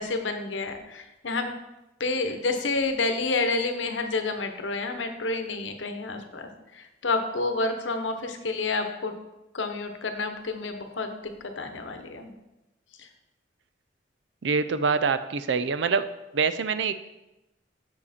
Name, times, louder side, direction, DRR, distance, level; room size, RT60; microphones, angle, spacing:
voice 1, 0.0-1.5 2.0-9.1 9.5-12.3 13.0-13.1, left 3 dB, 90° left, 6 dB, 0.9 m, -29 dB
voice 2, 14.4-16.0 16.3-16.9, right 5 dB, 70° right, 12 dB, 0.5 m, -25 dB
7.3 x 6.5 x 4.3 m, 0.96 s
head